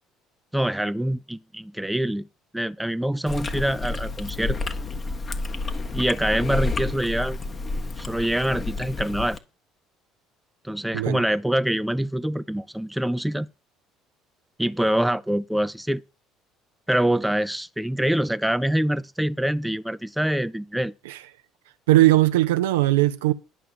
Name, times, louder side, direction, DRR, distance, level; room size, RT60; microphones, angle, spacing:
voice 1, 0.5-2.3 2.5-4.6 5.9-7.4 8.0-9.4 10.6-13.5 14.6-16.0 16.9-20.9, right 1 dB, 5° right, 0.6 m, -25 dB
Chewing mastication, 3.3-9.4, left 3 dB, 35° left, 1.4 m, -30 dB
voice 2, 21.9-23.3, right 17 dB, 80° right, 0.6 m, -19 dB
11.5 x 5.7 x 7.5 m
hypercardioid pair, 60°, 0 cm